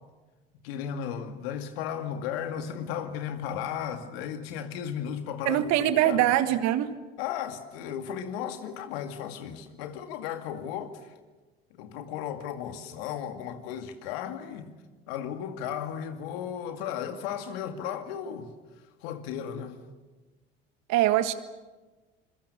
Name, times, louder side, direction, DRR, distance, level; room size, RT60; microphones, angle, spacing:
voice 1, 0.6-6.2 7.2-11.1 11.7-14.7 15.1-18.5 19.0-19.8, left 9 dB, 75° left, 2.3 m, -35 dB
voice 2, 5.4-6.9 20.9-21.3, right 13 dB, 65° right, 1.7 m, -23 dB
26.5 x 23.0 x 6.9 m
hypercardioid pair, 65°, 30 cm